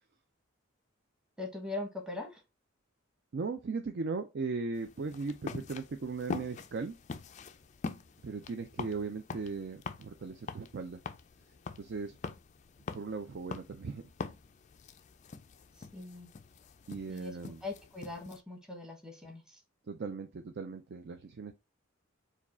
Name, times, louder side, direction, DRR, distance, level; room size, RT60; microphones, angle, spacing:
voice 1, 1.4-2.4 15.9-16.3 17.1-19.6, left 2 dB, 5° right, 0.9 m, -41 dB
voice 2, 3.3-7.0 8.2-11.0 11.8-12.2 12.9-14.0 16.9-17.6 19.9-21.5, right 4 dB, 55° right, 0.4 m, -38 dB
sound 1, 4.7-18.4, left 4 dB, 35° left, 0.3 m, -44 dB
4.7 x 2.3 x 4.2 m
head